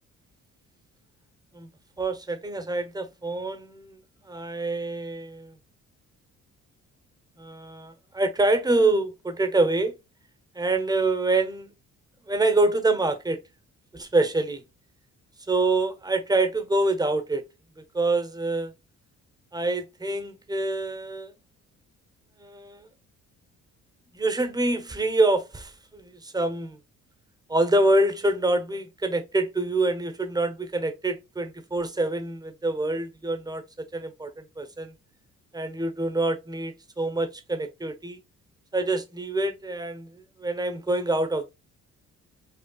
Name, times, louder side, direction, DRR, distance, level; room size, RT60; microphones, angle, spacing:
voice 1, 2.0-4.0 4.3-5.6 7.4-9.9 10.5-11.7 12.3-13.4 13.9-14.6 15.5-17.4 17.8-18.7 19.5-21.3 22.4-22.9 24.1-26.8 27.5-33.6 33.9-34.9 35.5-38.2 38.7-41.5, right 2 dB, 15° right, 0.8 m, -26 dB
5.3 x 2.3 x 2.3 m
cardioid pair, 90°, 30 cm